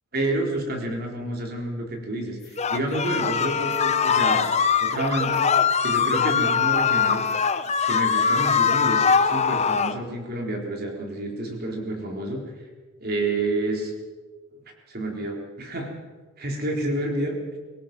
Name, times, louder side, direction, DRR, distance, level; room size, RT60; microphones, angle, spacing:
voice 1, 0.1-4.5 4.8-5.4 5.8-7.2 7.9-12.4 13.0-13.9 14.9-15.9 16.4-17.3, right 2 dB, 45° right, 1 dB, 4.0 m, -29 dB
sound 1, 2.6-10.0, left 6 dB, 30° left, 0.8 m, -22 dB
24.0 x 18.5 x 6.1 m, 1.4 s
head